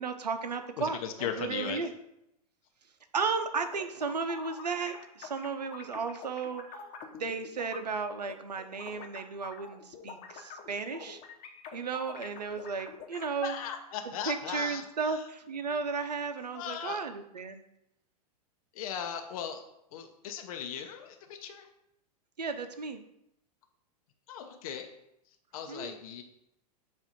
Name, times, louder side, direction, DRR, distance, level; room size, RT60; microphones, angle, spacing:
voice 1, 0.0-1.9 3.1-6.6 7.1-11.2 11.7-13.5 14.3-17.6 22.4-23.0 25.7-25.9, right 5 dB, 90° right, 8 dB, 0.6 m, -34 dB
voice 2, 0.8-1.8 13.1-15.2 16.5-17.0 18.7-19.6 19.9-21.7 24.3-24.9 25.5-26.2, left 8 dB, 60° left, 5 dB, 0.7 m, -38 dB
sound 1, 3.5-7.8 8.2-13.3, left 6 dB, 40° left, 1.0 m, -46 dB
7.3 x 2.6 x 5.2 m, 0.81 s
hypercardioid pair, 105°, 20 cm